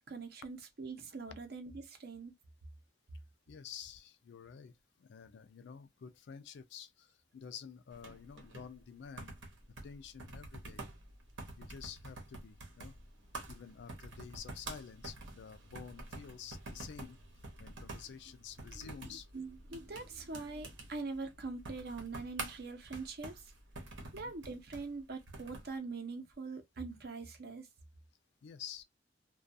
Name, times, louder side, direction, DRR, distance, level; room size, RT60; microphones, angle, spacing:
voice 1, 0.0-2.3 18.7-23.5 24.1-27.7, right 3 dB, 55° right, 0.6 m, -43 dB
voice 2, 3.5-9.4 9.8-10.8 11.6-12.9 13.5-17.2 17.6-19.3 24.0-24.3 28.4-28.8, left 7 dB, 65° left, 0.3 m, -50 dB
sound 1, 7.9-25.7, right 2 dB, 85° right, 0.9 m, -48 dB
2.3 x 2.3 x 2.6 m
head